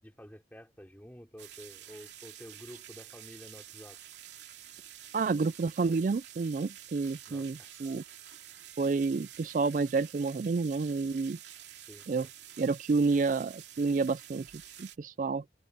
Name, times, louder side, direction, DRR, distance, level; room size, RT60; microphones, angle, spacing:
voice 1, 0.0-4.0 7.3-7.7 11.9-12.3, equal, 10° left, 3.2 m, -50 dB
sound 1, 1.4-15.0, right 11 dB, 80° right, 2.9 m, -49 dB
voice 2, 5.1-8.0 8.8-11.4 12.1-12.3 12.6-14.5 14.8-15.4, right 4 dB, 45° right, 0.3 m, -29 dB
sound 2, 7.7-11.3, right 1 dB, 10° right, 3.9 m, -68 dB
open air
head